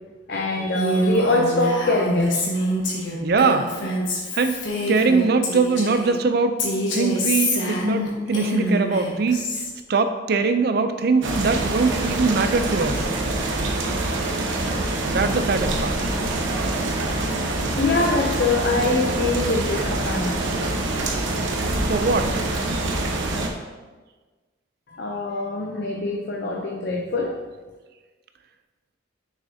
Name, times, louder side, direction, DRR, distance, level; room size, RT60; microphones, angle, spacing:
voice 1, 0.3-2.5 17.8-20.4 24.9-27.4, left 2 dB, 55° left, 0 dB, 0.5 m, -23 dB
Female speech woman speaking, 0.7-6.1 6.6-9.7, left 1 dB, 70° left, 1.3 m, -26 dB
voice 2, 3.2-3.7 4.3-4.6 4.9-9.6 9.9-13.1 15.1-16.0 21.9-22.4, right 4 dB, 50° right, 9 dB, 0.4 m, -22 dB
sound 1, 11.2-23.5, right 2 dB, 75° right, 0.9 m, -25 dB
6.4 x 6.3 x 2.7 m, 1.3 s
head